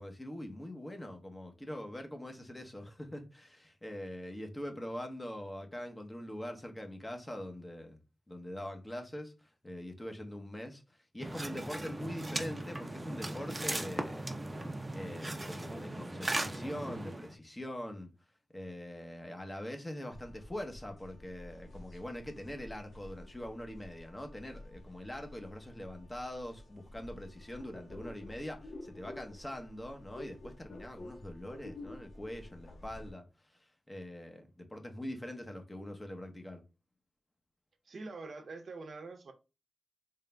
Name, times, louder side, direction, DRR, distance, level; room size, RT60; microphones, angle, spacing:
voice 1, 0.0-8.0 8.3-10.8 11.1-14.3 14.9-18.1 18.5-33.2 33.9-36.6, left 1 dB, 20° left, 0.8 m, -43 dB
sound 1, 11.2-17.3, right 1 dB, 20° right, 0.5 m, -38 dB
sound 2, 20.1-33.1, left 1 dB, 85° left, 1.1 m, -51 dB
voice 2, 37.9-39.3, right 3 dB, 70° right, 0.7 m, -45 dB
3.9 x 3.7 x 2.2 m
wide cardioid pair, 100°, 0 cm